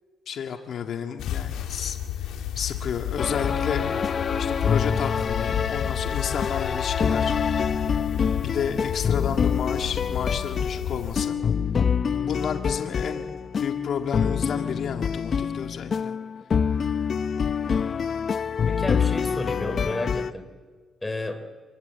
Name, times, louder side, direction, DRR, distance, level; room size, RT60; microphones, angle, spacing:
voice 1, 0.3-2.0 2.6-3.9 4.4-7.7 8.4-11.4 12.2-13.2 13.6-16.2, left 7 dB, 65° left, 4 dB, 1.8 m, -31 dB
sound 1, 1.2-11.3, left 10 dB, 85° left, 2.0 m, -32 dB
sound 2, 3.2-20.3, left 6 dB, 50° left, 0.7 m, -26 dB
voice 2, 11.7-12.1 18.7-20.5 21.0-21.4, left 2 dB, 15° left, 7 dB, 3.4 m, -32 dB
28.0 x 21.0 x 8.1 m, 1.5 s
cardioid pair, 90°, 0 cm